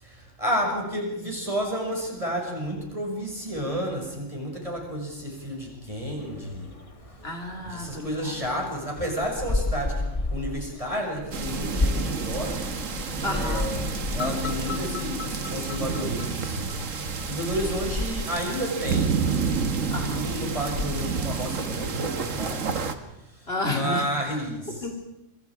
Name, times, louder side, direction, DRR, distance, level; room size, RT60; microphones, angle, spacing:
voice 1, 0.0-6.7 7.6-12.6 12.9-16.7 17.3-19.1 20.0-22.7 23.6-24.9, equal, 25° right, 0 dB, 6.2 m, -31 dB
sound 1, 6.2-8.7 8.9-21.5, left 2 dB, 30° left, 1.3 m, -34 dB
voice 2, 7.2-8.4 13.2-13.7 17.4-17.8 19.9-20.3 23.5-24.1 24.7-24.9, left 1 dB, 50° left, 3 dB, 2.7 m, -31 dB
sound 2, 11.3-22.9, right 5 dB, 85° right, 1.8 m, -30 dB
sound 3, 14.2-17.3, left 6 dB, 75° left, 2.1 m, -36 dB
27.0 x 24.5 x 4.9 m, 0.87 s
omnidirectional pair, 1.3 m